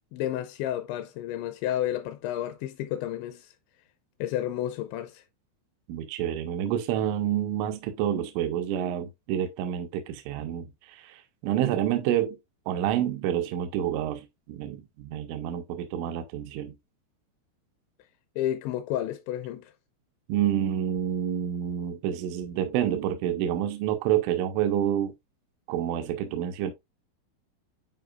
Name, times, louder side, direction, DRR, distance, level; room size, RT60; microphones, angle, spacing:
voice 1, 0.1-3.5 4.2-5.2 18.4-19.7, left 12 dB, 80° left, 2.7 m, -31 dB
voice 2, 5.9-12.4 12.7-16.8 20.3-25.1 25.7-26.7, right 10 dB, 90° right, 3.3 m, -28 dB
10.0 x 4.7 x 2.4 m
omnidirectional pair, 5.6 m